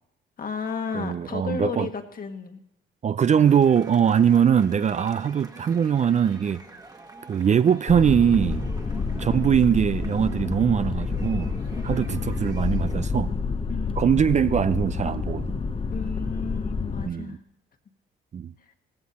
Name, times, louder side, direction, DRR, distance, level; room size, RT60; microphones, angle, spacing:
voice 1, 0.4-2.6 8.9-9.2 11.7-12.1 13.7-14.0 15.9-17.4, left 6 dB, 45° left, 1.6 m, -33 dB
voice 2, 0.9-1.9 3.0-6.6 7.3-8.7 9.2-11.5 11.8-13.3 14.0-15.6 17.1-17.4 18.3-18.5, right 8 dB, 35° right, 0.4 m, -22 dB
sound 1, 3.4-13.1, right 2 dB, 20° right, 1.4 m, -47 dB
sound 2, 7.9-17.1, left 4 dB, 30° left, 0.9 m, -29 dB
17.0 x 15.5 x 4.2 m
cardioid pair, 90°, 20 cm